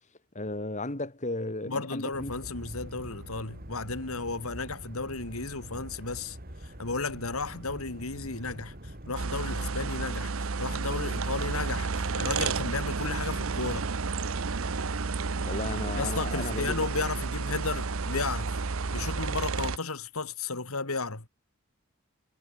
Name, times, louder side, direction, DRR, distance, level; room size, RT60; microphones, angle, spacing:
voice 1, 0.3-2.3 15.4-16.9, left 2 dB, 35° left, 2.3 m, -34 dB
voice 2, 1.7-6.4 6.8-13.9 16.0-18.5 18.9-21.3, left 3 dB, 80° left, 2.8 m, -34 dB
sound 1, 2.1-10.1, equal, 45° right, 5.8 m, -44 dB
sound 2, 9.2-19.8, right 4 dB, 70° right, 0.9 m, -31 dB
head